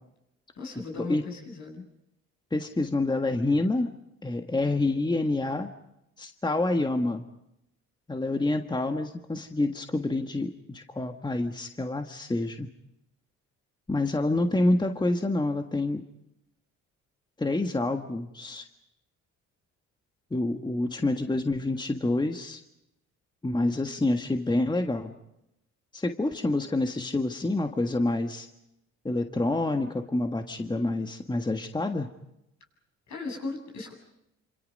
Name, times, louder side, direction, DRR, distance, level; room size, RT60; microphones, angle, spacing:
voice 1, 0.6-1.9 33.1-33.9, left 3 dB, 65° left, 1 dB, 7.9 m, -37 dB
voice 2, 2.5-3.9 4.2-5.7 6.2-7.2 8.1-12.7 13.9-16.0 17.4-18.7 20.3-22.6 23.4-25.1 25.9-28.5 29.0-32.1, left 2 dB, 15° left, 5 dB, 1.6 m, -27 dB
27.0 x 27.0 x 5.4 m, 0.85 s
cardioid pair, 90°, 30 cm